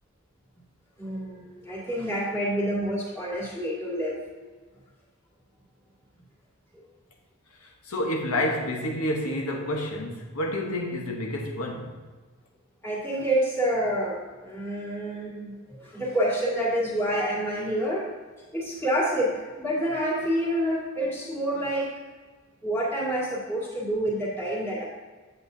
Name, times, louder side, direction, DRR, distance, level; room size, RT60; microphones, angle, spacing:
voice 1, 1.0-4.2 12.8-18.0 18.5-19.3 19.6-21.9 22.6-24.8, right 1 dB, 10° left, 1.9 m, -28 dB
voice 2, 7.6-12.0, left 1 dB, 80° left, 1.0 m, -29 dB
8.5 x 7.9 x 2.7 m
head